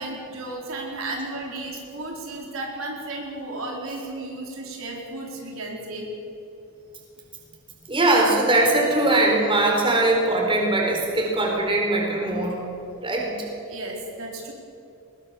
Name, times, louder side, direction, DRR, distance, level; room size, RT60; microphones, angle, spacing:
voice 1, 0.0-6.1 13.7-14.5, right 2 dB, 65° right, -1 dB, 4.5 m, -34 dB
voice 2, 7.9-12.6 13.0-13.5, right 2 dB, 20° right, -1 dB, 4.4 m, -21 dB
24.0 x 21.0 x 7.0 m, 2.8 s
head